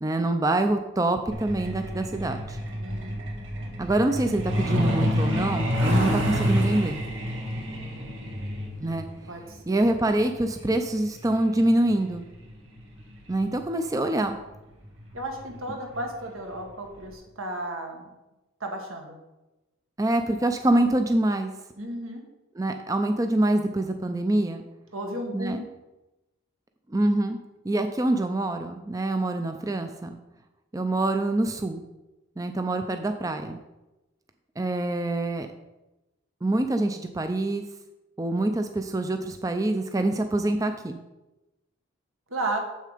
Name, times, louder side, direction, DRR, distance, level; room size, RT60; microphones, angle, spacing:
voice 1, 0.0-2.6 3.8-7.0 8.8-9.1 9.7-12.3 13.3-14.4 20.0-21.5 22.6-24.6 25.3-25.6 26.9-27.4 27.6-30.2 30.7-31.8 32.4-33.6 34.6-35.5 36.4-37.6 38.2-41.0, right 1 dB, 15° right, 7 dB, 0.4 m, -25 dB
Truck, 1.3-13.6 14.8-15.0 15.4-15.6 15.9-16.2 16.6-16.7 17.1-17.2, equal, 65° right, 1.9 m, -29 dB
voice 2, 2.8-3.2 9.3-9.8 15.1-18.1 18.6-19.2 21.8-22.2 24.9-25.6 42.3-42.6, right 1 dB, 85° right, 2 dB, 1.8 m, -33 dB
7.6 x 6.5 x 5.0 m, 1.0 s
head